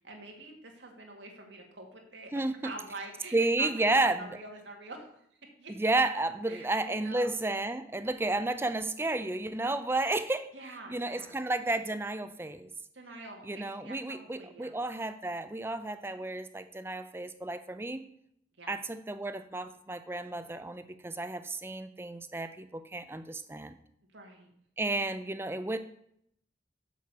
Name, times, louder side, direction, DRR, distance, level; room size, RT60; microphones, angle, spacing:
voice 1, 0.0-2.3 2.6-5.1 5.6-5.7 6.5-7.4 9.5-9.8 10.5-11.4 12.9-14.7 18.6-18.8 24.1-24.5, right 2 dB, 85° right, 1 dB, 2.0 m, -46 dB
voice 2, 2.3-2.7 3.3-4.3 5.7-10.5 10.9-12.7 13.4-18.0 18.7-23.8 24.8-25.8, right 2 dB, 15° right, 11 dB, 0.4 m, -32 dB
6.5 x 6.4 x 6.8 m, 0.71 s
head